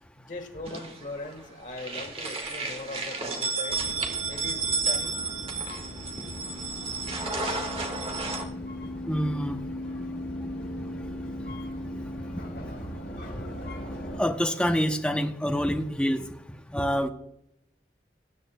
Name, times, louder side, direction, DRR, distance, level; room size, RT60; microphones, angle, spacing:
voice 1, 0.2-3.9 4.3-5.2, left 2 dB, 45° left, 5 dB, 1.5 m, -40 dB
sound 1, 0.6-1.4 1.7-8.4, right 4 dB, 35° right, 1.4 m, -32 dB
sound 2, 3.7-14.2, left 1 dB, 80° left, 4.0 m, -37 dB
voice 2, 9.1-9.6 14.2-16.2 16.7-17.1, equal, 5° left, 5 dB, 0.7 m, -26 dB
20.0 x 8.7 x 2.2 m, 0.80 s
head